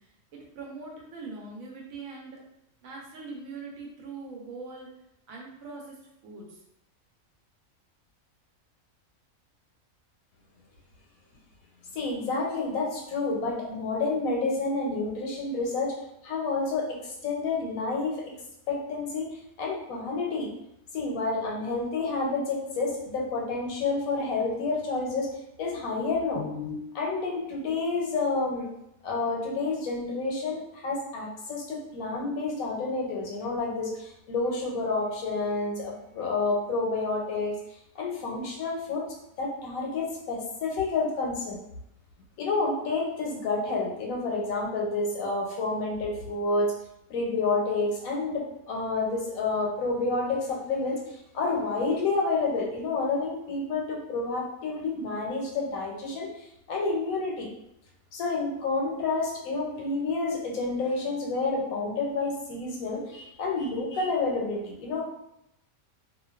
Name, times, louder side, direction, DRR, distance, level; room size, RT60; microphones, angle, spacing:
voice 1, 0.0-2.4 2.8-4.9 5.3-6.0 6.2-6.6, right 3 dB, 80° right, -1 dB, 1.0 m, -42 dB
voice 2, 11.9-16.0 16.2-18.1 18.7-19.3 19.6-20.5 20.9-25.3 25.6-28.7 29.0-37.6 37.9-39.1 39.4-41.6 42.4-46.7 47.1-57.5 58.1-65.0, left 3 dB, 85° left, -1 dB, 1.0 m, -29 dB
2.4 x 2.2 x 2.3 m, 0.83 s
omnidirectional pair, 1.4 m